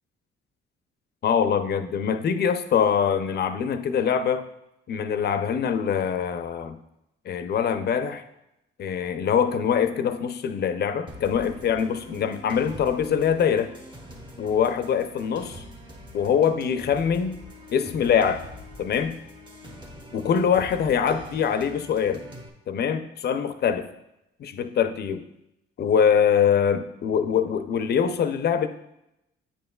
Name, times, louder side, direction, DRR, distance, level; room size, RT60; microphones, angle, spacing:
voice 1, 1.2-4.5 4.9-6.8 7.3-8.2 8.8-13.7 14.4-15.6 16.1-17.4 17.7-18.4 18.8-19.2 20.1-22.2 22.7-23.9 24.4-25.2 25.8-28.7, left 7 dB, 55° left, 9 dB, 0.5 m, -23 dB
sound 1, 11.1-22.5, equal, 25° right, 1.0 m, -44 dB
8.6 x 5.5 x 2.3 m, 0.86 s
cardioid pair, 90°, 20 cm